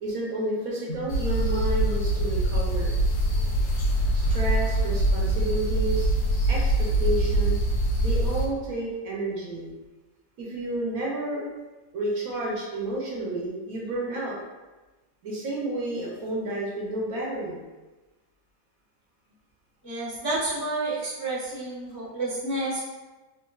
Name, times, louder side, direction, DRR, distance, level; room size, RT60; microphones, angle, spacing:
voice 1, 0.0-2.9 4.1-6.1 6.5-7.6 8.0-9.7 10.4-11.4 11.9-14.3 15.2-17.6, right 1 dB, 60° right, -5 dB, 1.0 m, -30 dB
sound 1, 1.1-8.5, right 1 dB, 80° left, 1.2 m, -24 dB
voice 2, 19.8-22.8, right 2 dB, 20° left, -8 dB, 0.6 m, -30 dB
3.6 x 2.6 x 2.2 m, 1.2 s
omnidirectional pair, 1.9 m